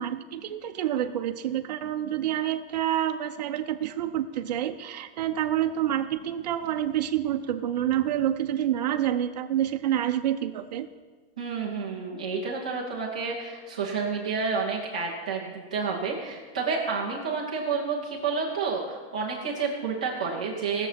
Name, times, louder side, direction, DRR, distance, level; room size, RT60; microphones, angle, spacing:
voice 1, 0.0-10.9, right 11 dB, 40° right, 7 dB, 0.7 m, -28 dB
voice 2, 11.4-20.9, right 5 dB, 10° right, -5 dB, 0.3 m, -30 dB
18.0 x 6.9 x 5.8 m, 1.4 s
supercardioid pair, 180°, 32 cm